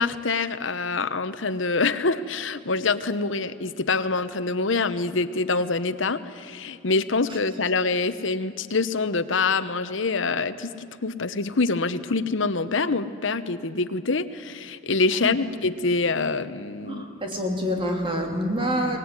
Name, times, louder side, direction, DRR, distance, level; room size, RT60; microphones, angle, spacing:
voice 1, 0.0-17.1, left 3 dB, 70° left, 11 dB, 1.0 m, -25 dB
voice 2, 16.9-19.0, equal, 25° right, 2 dB, 3.0 m, -26 dB
23.5 x 19.5 x 9.8 m, 2.4 s
head